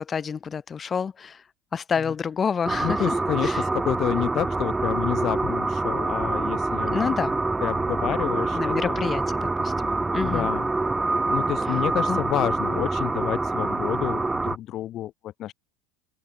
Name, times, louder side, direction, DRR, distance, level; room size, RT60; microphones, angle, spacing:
voice 1, 0.0-1.4 1.7-3.1 3.4-3.6 6.9-7.4 8.5-10.5 12.1-12.2, left 6 dB, 30° left, 0.7 m, -28 dB
sound 1, 2.7-14.6, right 3 dB, 10° right, 0.9 m, -26 dB
voice 2, 2.8-7.1 7.6-9.0 9.8-10.7 11.3-15.5, left 13 dB, 50° left, 1.3 m, -29 dB
hypercardioid pair, 90°, 0 cm